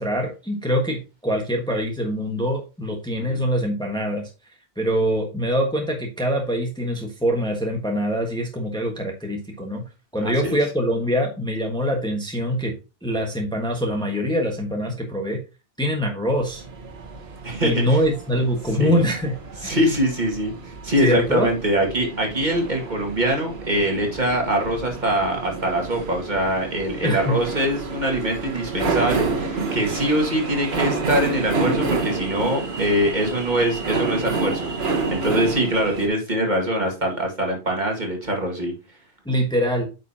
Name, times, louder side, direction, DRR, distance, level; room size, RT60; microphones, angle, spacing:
voice 1, 0.0-4.3 4.8-9.8 10.1-12.7 13.0-15.4 15.8-16.6 17.6-19.4 19.6-19.8 21.0-21.5 27.0-27.4 39.2-39.9, equal, 5° left, 1 dB, 1.3 m, -24 dB
voice 2, 10.2-10.6 17.4-18.0 18.8-19.0 19.6-20.5 20.8-38.7, right 1 dB, 40° right, 1 dB, 2.1 m, -23 dB
sound 1, 16.3-36.1, right 4 dB, 65° right, 1.6 m, -29 dB
9.1 x 5.4 x 2.8 m, 0.30 s
omnidirectional pair, 1.1 m